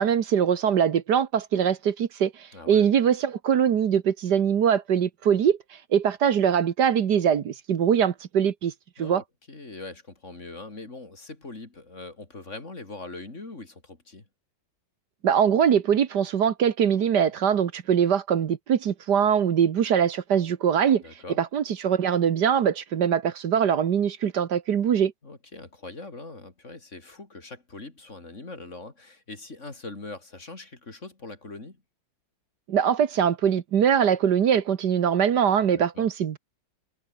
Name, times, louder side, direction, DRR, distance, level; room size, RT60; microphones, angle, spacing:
voice 1, 0.0-5.6 5.9-8.7 9.0-9.2 15.2-21.0 21.4-25.1 32.7-36.4, right 8 dB, 70° right, 1.8 m, -22 dB
voice 2, 2.5-2.9 9.0-14.3 21.0-21.4 25.2-31.8 35.7-36.1, left 3 dB, 40° left, 3.7 m, -42 dB
omnidirectional pair, 1.9 m